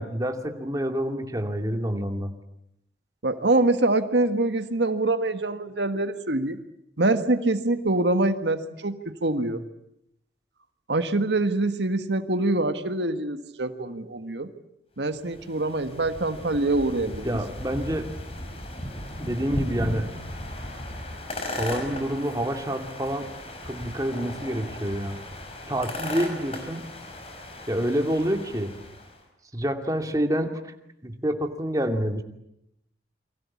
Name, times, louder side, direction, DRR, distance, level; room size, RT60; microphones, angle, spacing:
voice 1, 0.0-2.3 17.2-18.1 19.2-20.1 21.6-23.3 23.6-25.2 25.7-26.8 27.7-28.7 29.5-30.7 31.0-32.2, equal, 20° right, 5 dB, 2.5 m, -27 dB
voice 2, 3.2-6.6 7.0-9.6 10.9-14.5 15.0-17.3, right 2 dB, 80° right, 9 dB, 1.6 m, -25 dB
sound 1, 15.1-29.2, left 1 dB, 35° left, 5.2 m, -36 dB
29.0 x 23.5 x 8.5 m, 0.79 s
head